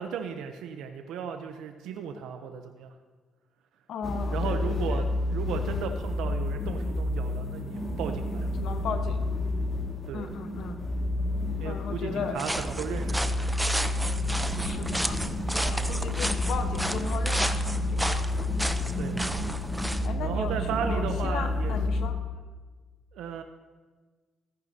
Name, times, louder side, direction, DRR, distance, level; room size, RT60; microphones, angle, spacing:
voice 1, 0.0-2.9 4.3-8.5 10.1-10.3 11.6-13.5 19.0-19.3 20.2-21.8 23.1-23.4, right 7 dB, 90° right, 6 dB, 0.6 m, -35 dB
voice 2, 3.9-5.0 8.6-9.2 10.1-10.8 11.6-12.5 14.6-15.2 15.5-17.6 17.9-18.5 19.4-19.7 20.0-20.6 20.8-22.1, left 6 dB, 75° left, 6 dB, 1.0 m, -36 dB
sound 1, 4.0-22.1, left 1 dB, 30° left, 1.8 m, -30 dB
sound 2, 12.4-20.1, right 1 dB, 5° right, 0.6 m, -33 dB
15.5 x 10.5 x 2.7 m, 1.4 s
cardioid pair, 90°, 0 cm